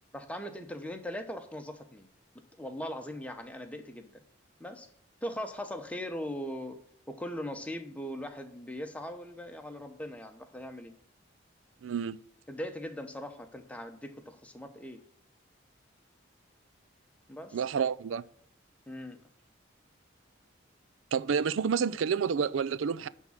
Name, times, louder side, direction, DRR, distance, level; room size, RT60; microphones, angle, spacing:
voice 1, 0.1-2.1 2.6-4.2 4.6-4.9 5.2-6.8 7.1-10.9 12.5-15.0 17.3-17.6 18.9-19.2, equal, 5° left, 0.9 m, -40 dB
voice 2, 11.8-12.2 17.5-18.2 21.1-23.1, right 6 dB, 85° right, 0.4 m, -29 dB
10.5 x 3.6 x 7.3 m
head